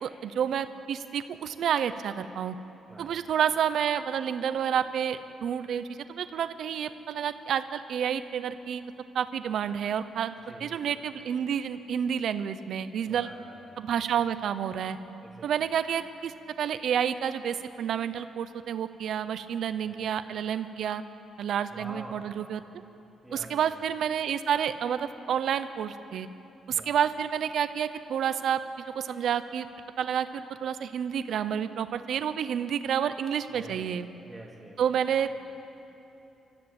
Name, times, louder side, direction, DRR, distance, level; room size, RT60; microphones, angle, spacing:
voice 1, 0.0-2.5 3.0-8.8 9.1-10.3 10.6-13.3 13.8-15.0 15.4-16.3 16.6-21.0 21.4-22.6 23.3-26.3 26.7-29.7 30.0-34.1 34.8-35.3, right 8 dB, 60° right, 11 dB, 0.8 m, -29 dB
voice 2, 2.9-3.2 10.4-11.0 13.1-13.8 15.2-15.5 19.8-20.2 21.7-22.3 23.2-23.8 26.7-27.0 33.5-33.9 34.2-35.0, right 1 dB, 5° right, -2 dB, 2.9 m, -47 dB
24.5 x 13.5 x 8.9 m, 2.9 s
cardioid pair, 165°, 0 cm